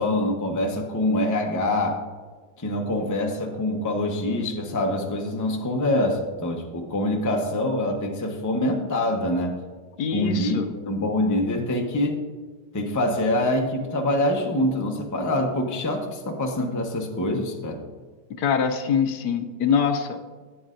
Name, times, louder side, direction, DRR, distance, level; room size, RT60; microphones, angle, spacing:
voice 1, 0.0-2.0 2.6-9.6 10.1-10.5 10.9-12.2 12.7-17.8, left 1 dB, 20° left, 1 dB, 0.5 m, -25 dB
voice 2, 10.0-10.7 18.3-20.3, left 7 dB, 75° left, 7 dB, 1.1 m, -24 dB
13.5 x 8.7 x 2.6 m, 1.4 s
omnidirectional pair, 1.9 m